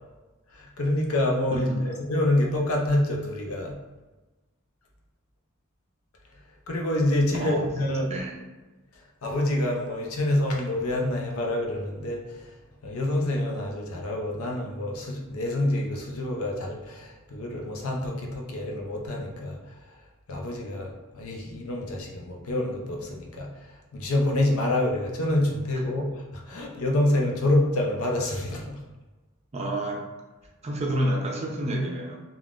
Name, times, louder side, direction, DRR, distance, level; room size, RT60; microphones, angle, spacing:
voice 1, 0.5-3.8 6.7-8.1 9.2-12.5 12.8-19.6 20.3-28.8, left 1 dB, 70° left, 0 dB, 0.6 m, -27 dB
voice 2, 1.5-1.9 7.4-7.6 8.1-8.4 29.5-30.1 30.6-32.2, right 1 dB, 30° right, 0 dB, 0.4 m, -28 dB
3.5 x 2.3 x 2.4 m, 1.2 s
head